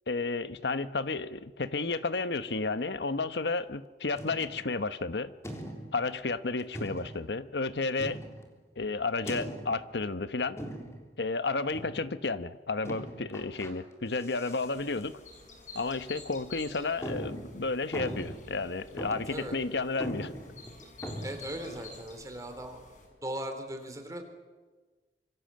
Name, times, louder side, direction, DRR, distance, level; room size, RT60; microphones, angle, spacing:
voice 1, 0.1-5.3 5.9-8.2 8.8-10.6 11.2-15.2 15.7-20.3, left 3 dB, 80° left, 13 dB, 1.1 m, -32 dB
sound 1, 4.2-4.7 5.4-6.1 6.7-7.3 8.0-8.6 9.3-9.9 10.6-11.1 11.7-12.1 12.8-13.7 14.1-14.7 15.0-15.1 15.8-15.9 16.4-16.5 17.0-18.6 19.0-19.4 19.7-19.8 20.0-21.3, equal, 15° left, 3.6 m, -40 dB
sound 2, 14.6-23.1, left 3 dB, 45° left, 5.8 m, -51 dB
voice 2, 21.2-22.8 23.2-24.2, right 1 dB, 20° right, 5 dB, 3.6 m, -38 dB
26.0 x 24.5 x 7.7 m, 1.3 s
head